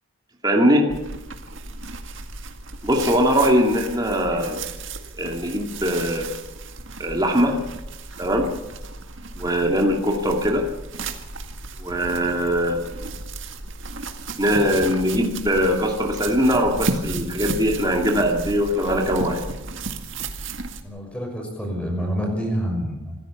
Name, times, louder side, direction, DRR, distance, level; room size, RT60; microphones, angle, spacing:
voice 1, 0.4-0.9 2.8-4.6 5.2-6.3 7.0-7.6 8.2-8.5 9.4-10.7 11.8-12.8 14.4-19.4, equal, 20° right, 1 dB, 2.3 m, -21 dB
sound 1, 0.9-20.8, right 3 dB, 60° right, 2.0 m, -34 dB
voice 2, 20.8-23.2, equal, 5° left, 2 dB, 6.1 m, -28 dB
26.5 x 14.5 x 7.1 m, 1.0 s
head